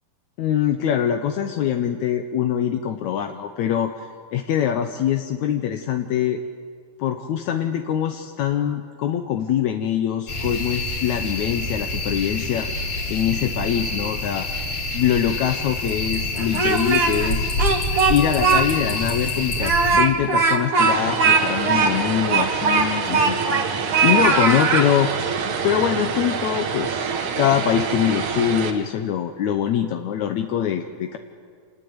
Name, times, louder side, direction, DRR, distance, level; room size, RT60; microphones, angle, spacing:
voice 1, 0.4-6.4 7.0-12.7 13.1-14.5 14.9-17.5 18.1-25.1 25.6-27.1 27.4-31.2, left 9 dB, 70° left, 6 dB, 1.8 m, -23 dB
sound 1, 10.3-20.0, left 2 dB, 45° left, 3.8 m, -27 dB
Speech, 16.3-17.3 17.6-18.6 19.0-19.1 19.6-23.7 23.9-24.9, right 4 dB, 45° right, 2.5 m, -19 dB
Vehicle, 20.8-28.7, right 6 dB, 60° right, 2.7 m, -27 dB
27.5 x 19.5 x 9.5 m, 2.1 s
omnidirectional pair, 4.3 m